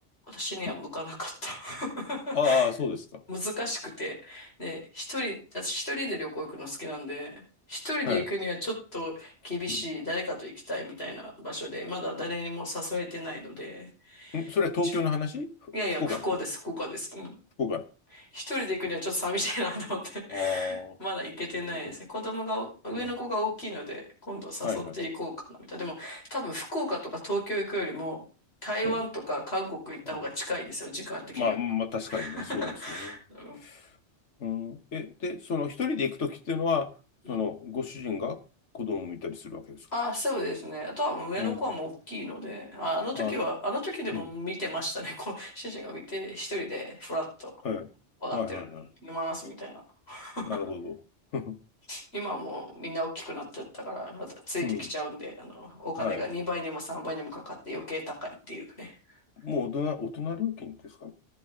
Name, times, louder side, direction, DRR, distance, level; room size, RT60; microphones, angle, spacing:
voice 1, 0.3-2.7 3.3-7.4 7.7-14.5 14.8-14.9 15.7-17.3 18.1-28.2 28.6-31.6 32.1-33.6 37.2-37.4 39.9-47.5 48.2-48.6 49.0-49.8 50.1-50.6 51.9-59.0, left 1 dB, 60° left, -1 dB, 5.7 m, -34 dB
voice 2, 2.3-3.2 8.1-8.3 9.7-9.8 14.3-15.5 16.0-16.2 17.6-17.8 20.3-20.9 21.7-21.8 24.6-25.0 28.8-29.0 30.1-30.2 31.3-32.7 33.0-33.1 33.6-33.8 34.4-36.9 37.3-38.4 38.7-39.8 41.4-41.6 43.2-43.4 44.1-44.3 47.6-47.9 48.3-48.9 50.5-51.0 51.3-51.6 54.6-54.9 56.0-56.2 59.4-61.1, left 5 dB, 80° left, 8 dB, 1.6 m, -30 dB
12.5 x 11.0 x 3.8 m, 0.35 s
omnidirectional pair, 1.2 m